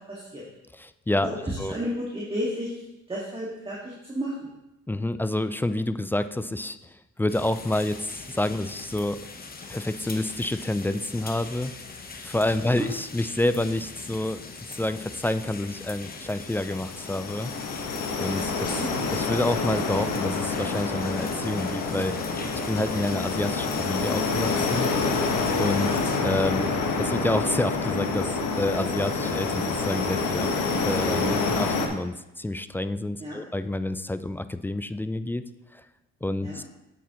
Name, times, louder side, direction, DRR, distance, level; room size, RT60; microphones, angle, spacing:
voice 1, 0.1-0.4 1.2-2.7 3.1-4.3 12.7-12.9 18.6-18.9 25.7-26.0 33.2-33.4 36.4-36.6, equal, 15° right, -5 dB, 1.9 m, -32 dB
voice 2, 0.7-1.3 1.6-1.7 4.9-9.2 9.7-11.7 12.2-14.4 14.7-17.5 18.2-22.2 22.7-24.9 25.6-26.7 27.0-30.5 30.8-35.8 36.2-36.6, left 1 dB, 5° left, 12 dB, 0.3 m, -28 dB
sound 1, 7.3-26.2, left 4 dB, 30° left, 1.0 m, -41 dB
sound 2, 16.2-31.9, left 4 dB, 80° left, 1.3 m, -27 dB
8.3 x 8.2 x 3.0 m, 0.93 s
cardioid pair, 90°, 30 cm